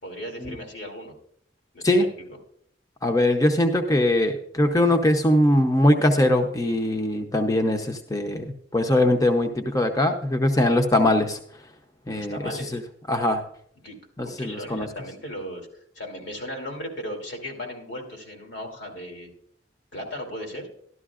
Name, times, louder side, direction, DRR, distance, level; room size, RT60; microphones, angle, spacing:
voice 1, 0.0-1.1 1.7-2.4 12.1-12.8 13.8-14.0 14.2-15.7 15.9-19.3 19.9-20.7, equal, 80° left, 1 dB, 2.9 m, -36 dB
voice 2, 3.0-11.4 12.1-12.4 12.7-12.8 13.1-13.4 14.2-14.9, left 1 dB, 20° left, 5 dB, 0.7 m, -21 dB
13.0 x 12.5 x 2.4 m, 0.67 s
head